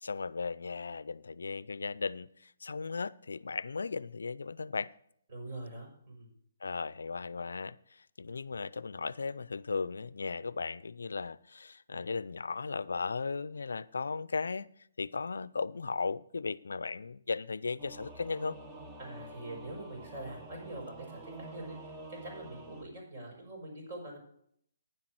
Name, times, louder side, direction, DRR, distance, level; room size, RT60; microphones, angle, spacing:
voice 1, 0.0-4.9 6.6-14.7 15.0-18.6, left 4 dB, 80° left, 0.4 m, -36 dB
voice 2, 5.3-6.3 11.9-12.0 19.0-24.2, right 1 dB, 50° right, 5.9 m, -44 dB
Singing / Musical instrument, 17.8-22.8, right 2 dB, 20° right, 1.1 m, -48 dB
10.0 x 7.7 x 6.1 m
hypercardioid pair, 145°, 0 cm